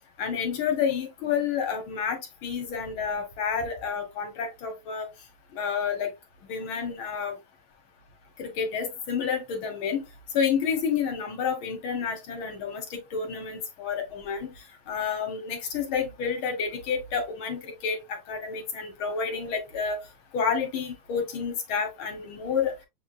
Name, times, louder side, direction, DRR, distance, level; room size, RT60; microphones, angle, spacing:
voice 1, 0.2-5.1 5.5-6.1 6.5-7.4 8.4-10.0 10.3-14.5 14.9-20.0 20.3-22.7, left 6 dB, 75° left, 1.7 m, -29 dB
6.8 x 3.3 x 2.3 m
omnidirectional pair, 2.3 m